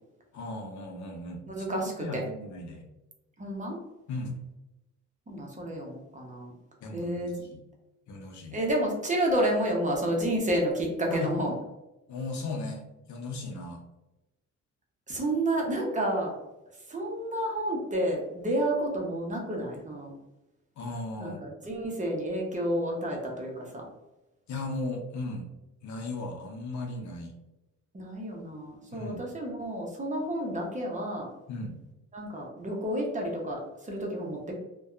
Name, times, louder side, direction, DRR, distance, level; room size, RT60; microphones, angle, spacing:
voice 1, 0.3-2.9 4.1-4.3 6.8-7.6 8.1-8.6 11.1-11.3 12.1-12.8 13.1-13.8 20.8-21.5 24.5-25.5 25.8-27.3 28.9-29.2 31.5-31.8, left 2 dB, 70° left, 2 dB, 0.7 m, -36 dB
voice 2, 1.5-2.2 3.4-3.8 5.3-6.5 6.9-7.3 8.5-11.5 15.1-16.3 16.9-20.1 21.2-23.8 27.9-31.3 32.1-34.5, right 1 dB, 25° right, -1 dB, 0.7 m, -30 dB
2.6 x 2.2 x 2.4 m, 0.99 s
cardioid pair, 90°, 30 cm